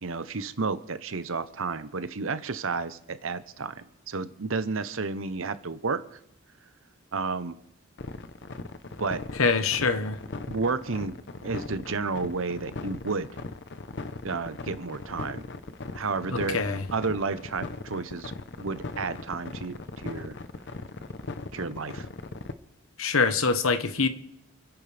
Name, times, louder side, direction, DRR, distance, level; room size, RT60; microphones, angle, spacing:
voice 1, 0.0-6.2 7.1-7.6 9.0-9.2 10.5-11.2 11.4-13.3 14.2-15.5 15.9-18.3 18.6-19.8 20.0-20.3 21.5-22.1, right 4 dB, 65° right, 0.8 m, -31 dB
sound 1, 8.0-22.5, left 3 dB, 55° left, 0.7 m, -38 dB
voice 2, 9.4-10.2 16.3-16.8 23.0-24.1, left 4 dB, 70° left, 1.1 m, -24 dB
29.0 x 10.5 x 3.4 m
head